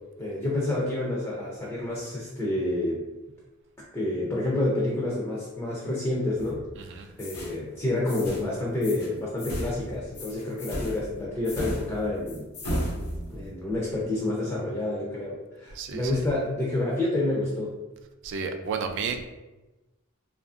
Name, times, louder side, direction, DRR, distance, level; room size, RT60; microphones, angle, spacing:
voice 1, 0.2-3.0 3.9-12.5 13.3-17.7, left 2 dB, 15° left, -5 dB, 0.4 m, -29 dB
sound 1, 6.3-6.8 7.2-7.6 8.1-8.5 8.8-9.1 9.4-13.5, equal, 70° left, 0.6 m, -35 dB
voice 2, 15.8-16.2 18.2-19.3, right 5 dB, 55° right, 6 dB, 0.3 m, -32 dB
2.8 x 2.4 x 2.3 m, 1.1 s
head